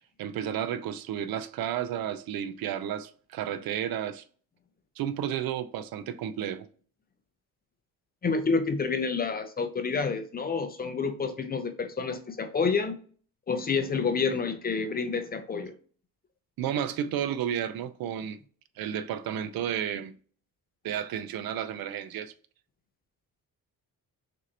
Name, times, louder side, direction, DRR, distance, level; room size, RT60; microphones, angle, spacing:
voice 1, 0.2-4.2 5.0-6.7 16.6-18.4 18.8-20.1 20.8-22.3, right 9 dB, 70° right, 0.6 m, -32 dB
voice 2, 8.2-13.0 13.5-15.7, left 5 dB, 25° left, 0.5 m, -28 dB
6.2 x 2.6 x 2.8 m
cardioid pair, 140°, 37 cm